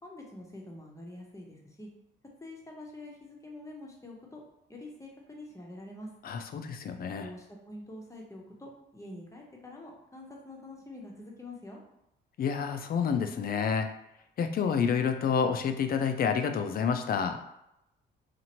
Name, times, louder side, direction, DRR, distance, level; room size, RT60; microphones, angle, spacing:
voice 1, 0.0-1.9 2.4-4.4 4.7-6.1 7.1-11.8, left 1 dB, 15° left, -1 dB, 0.8 m, -46 dB
voice 2, 6.2-7.3 12.4-13.9 14.4-17.4, left 6 dB, 50° left, 7 dB, 0.4 m, -29 dB
2.8 x 2.5 x 2.9 m, 0.83 s
cardioid pair, 90°, 20 cm